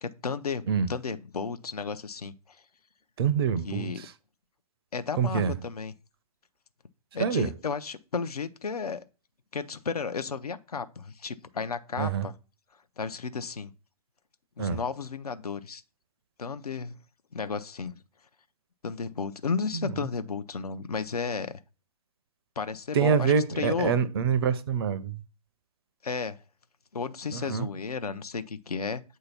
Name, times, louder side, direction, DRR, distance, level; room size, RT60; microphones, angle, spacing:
voice 1, 0.0-2.3 3.6-4.1 4.9-5.9 7.1-9.0 9.5-12.3 13.0-13.7 14.6-15.8 16.4-16.9 17.3-18.0 18.8-21.6 22.6-24.0 26.0-26.4 26.9-29.0, left 5 dB, 70° left, 0.6 m, -33 dB
voice 2, 3.2-4.1 5.2-5.5 7.2-7.5 12.0-12.3 14.6-14.8 19.7-19.9 22.9-25.2 27.3-27.7, right 7 dB, 40° right, 0.5 m, -26 dB
8.0 x 2.8 x 5.7 m
figure-of-eight pair, 120°, 20 cm